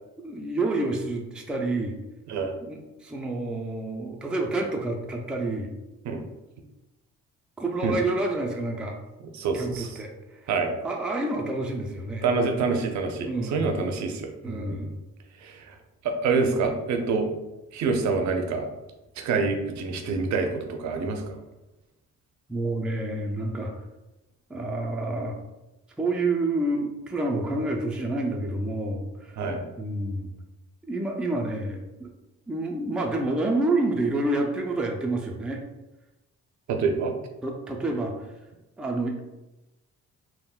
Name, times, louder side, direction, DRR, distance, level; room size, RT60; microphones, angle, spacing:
voice 1, 0.2-2.0 2.6-5.8 7.6-9.0 9.5-10.5 10.8-12.3 13.2-13.8 14.4-15.0 22.5-23.7 24.5-25.4 26.0-29.4 29.8-30.3 30.8-32.1 32.5-35.6 37.4-38.1 38.8-39.2, right 2 dB, 5° right, 0 dB, 0.3 m, -28 dB
voice 2, 9.3-10.0 10.5-10.7 12.2-14.9 15.4-15.7 16.0-17.3 17.7-18.7 19.2-21.4 29.4-29.6 36.7-37.1, right 4 dB, 70° right, 5 dB, 0.5 m, -26 dB
3.5 x 2.1 x 2.3 m, 1.0 s
cardioid pair, 90°, 30 cm